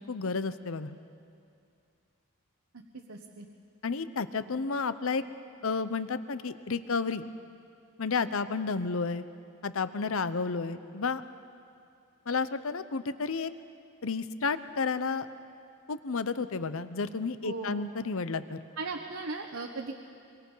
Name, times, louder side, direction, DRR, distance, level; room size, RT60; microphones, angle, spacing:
voice 1, 0.1-1.0 3.8-5.2 5.6-7.3 8.0-9.2 9.6-11.2 12.3-13.5 14.0-15.3 15.9-18.6, left 4 dB, 65° left, 13 dB, 0.8 m, -31 dB
voice 2, 2.9-3.5 17.4-17.9 18.8-19.9, right 3 dB, 65° right, 1 dB, 1.3 m, -37 dB
24.5 x 24.0 x 5.6 m, 2.5 s
head